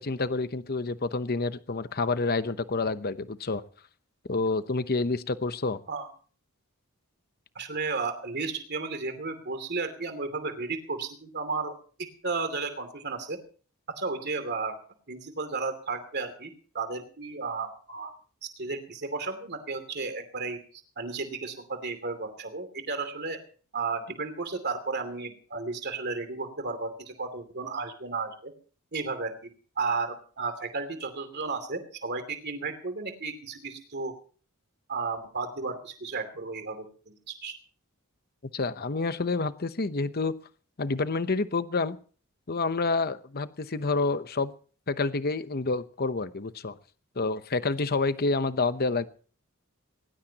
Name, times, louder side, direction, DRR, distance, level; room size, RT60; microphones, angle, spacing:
voice 1, 0.0-3.6 4.3-5.8 38.5-40.4 40.8-42.0 42.5-44.5 44.9-46.8 47.2-49.1, left 3 dB, 45° left, 12 dB, 0.9 m, -28 dB
voice 2, 7.5-11.7 12.2-13.4 13.9-14.8 15.1-18.1 18.6-20.6 21.0-23.4 23.7-28.5 28.9-29.3 29.8-34.1 34.9-37.6, right 4 dB, 50° right, 8 dB, 2.7 m, -33 dB
19.5 x 19.0 x 2.9 m, 0.41 s
head